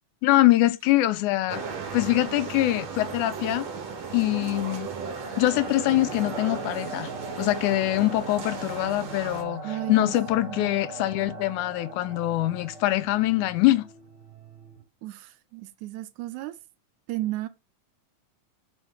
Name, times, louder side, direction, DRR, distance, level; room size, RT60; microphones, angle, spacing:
voice 1, 0.2-1.6 1.9-3.7 4.1-4.9 5.4-7.1 7.4-13.9, left 16 dB, 80° left, 2.0 m, -24 dB
sound 1, 1.5-9.4, right 5 dB, 65° right, 2.4 m, -36 dB
sound 2, 3.1-13.6, right 1 dB, 15° right, 2.1 m, -42 dB
sound 3, 5.6-14.8, right 8 dB, 45° right, 3.3 m, -46 dB
voice 2, 9.6-10.2 10.5-10.7 15.0-16.6 17.1-17.5, right 15 dB, 80° right, 2.0 m, -33 dB
5.7 x 4.4 x 4.4 m
omnidirectional pair, 3.5 m